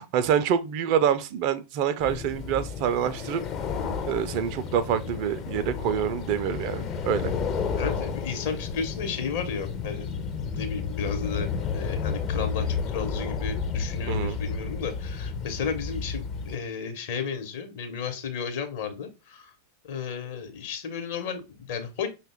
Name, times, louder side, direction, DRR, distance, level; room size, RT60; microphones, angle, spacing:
voice 1, 0.0-3.4 4.1-7.3 14.1-14.4, right 8 dB, 45° right, 0.4 m, -26 dB
sound 1, 2.0-16.6, left 5 dB, 35° left, 0.6 m, -31 dB
voice 2, 7.8-10.1 10.5-19.5 19.8-22.1, left 6 dB, 55° left, 0.9 m, -33 dB
5.4 x 2.3 x 3.4 m
figure-of-eight pair, 90°, 0 cm